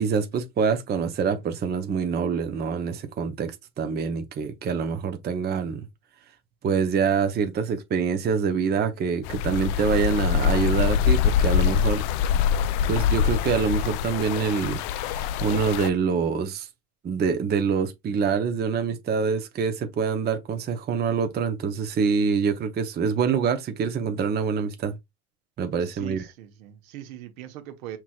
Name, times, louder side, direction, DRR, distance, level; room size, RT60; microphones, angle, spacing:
voice 1, 0.0-5.9 6.6-12.1 12.9-16.7 17.0-25.0 25.6-26.2, right 6 dB, 25° right, 0.6 m, -25 dB
sound 1, 9.2-15.9, left 8 dB, 50° left, 0.5 m, -24 dB
voice 2, 25.8-28.0, right 13 dB, 65° right, 1.1 m, -40 dB
5.9 x 3.0 x 2.3 m
hypercardioid pair, 85°, 44 cm